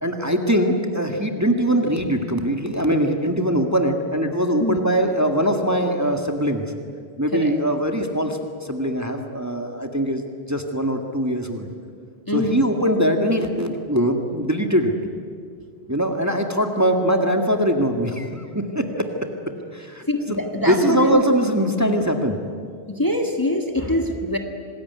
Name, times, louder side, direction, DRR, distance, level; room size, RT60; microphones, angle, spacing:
voice 1, 0.0-6.7 7.2-11.7 12.3-14.9 15.9-19.1 19.7-22.4, equal, 15° right, 3 dB, 1.9 m, -22 dB
voice 2, 12.3-12.6 20.1-21.2 22.9-24.4, left 1 dB, 20° left, 3 dB, 1.7 m, -23 dB
26.5 x 20.0 x 9.6 m, 2.2 s
omnidirectional pair, 1.1 m